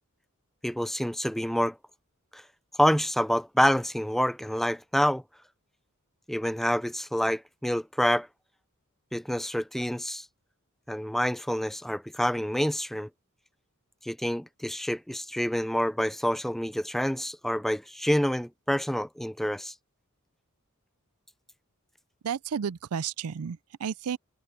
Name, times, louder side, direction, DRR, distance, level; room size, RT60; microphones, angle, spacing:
voice 1, 0.6-1.8 2.3-2.4 2.8-5.2 6.3-8.3 9.1-10.3 10.9-13.1 14.0-19.7, equal, ahead, 0.4 m, -27 dB
voice 2, 22.2-24.2, right 7 dB, 85° right, 0.4 m, -32 dB
head